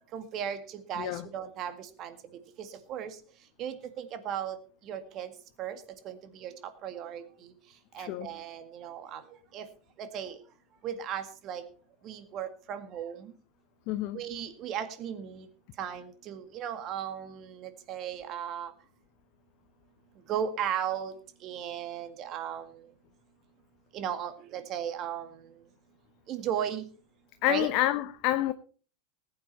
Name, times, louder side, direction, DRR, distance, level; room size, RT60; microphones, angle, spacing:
voice 1, 0.1-0.6 0.9-1.7 2.0-2.1 2.9-3.1 3.6-4.6 4.9-5.3 5.6-5.8 6.1-6.5 6.8-7.2 8.0-9.2 9.5-9.7 10.0-10.3 10.8-11.6 12.0-13.3 14.1-15.5 15.8-18.7 20.3-21.1 21.4-22.6 23.9-25.3 26.3-26.9 27.5-27.7, right 9 dB, 40° right, 2.0 m, -35 dB
voice 2, 1.0-1.3 8.0-8.3 13.9-14.2 27.4-28.5, left 14 dB, 50° left, 0.8 m, -28 dB
20.0 x 8.7 x 4.2 m
figure-of-eight pair, 85°, 0 cm